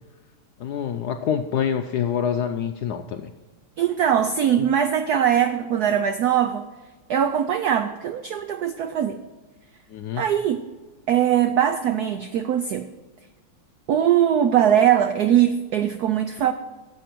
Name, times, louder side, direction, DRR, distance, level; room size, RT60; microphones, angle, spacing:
voice 1, 0.6-3.3 9.9-10.2, left 8 dB, 75° left, 6 dB, 0.9 m, -26 dB
voice 2, 3.8-6.6 7.1-9.2 10.1-10.6 11.1-12.9 13.9-16.5, right 9 dB, 90° right, 9 dB, 0.8 m, -21 dB
14.0 x 7.9 x 4.5 m, 1.3 s
omnidirectional pair, 2.3 m